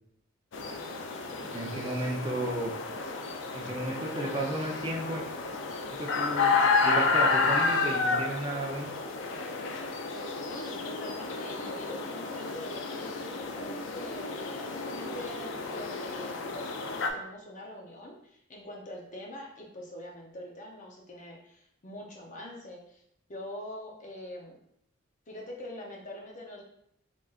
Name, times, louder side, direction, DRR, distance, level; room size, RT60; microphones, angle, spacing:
sound 1, 0.5-17.1, left 4 dB, 65° left, 0.4 m, -31 dB
voice 1, 1.5-2.7 3.5-5.2 5.9-8.9, right 1 dB, 25° right, -2 dB, 0.7 m, -33 dB
voice 2, 10.4-23.0 23.3-24.6 25.3-26.6, left 1 dB, 40° left, 0 dB, 0.8 m, -44 dB
3.9 x 3.5 x 2.4 m, 0.72 s
head